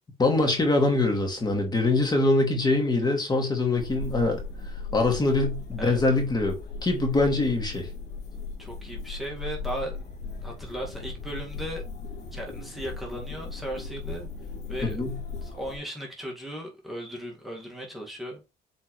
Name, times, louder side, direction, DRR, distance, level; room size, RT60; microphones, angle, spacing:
voice 1, 0.2-4.4 4.9-6.5 6.8-7.9 14.8-15.2, left 2 dB, 25° left, 2.3 m, -23 dB
sound 1, 3.8-15.8, left 4 dB, 75° left, 2.8 m, -37 dB
voice 2, 8.6-10.0 10.4-11.8 12.3-14.3 14.7-15.0 15.4-18.4, equal, ahead, 2.0 m, -36 dB
7.9 x 4.4 x 3.2 m
cardioid pair, 110°, 17 cm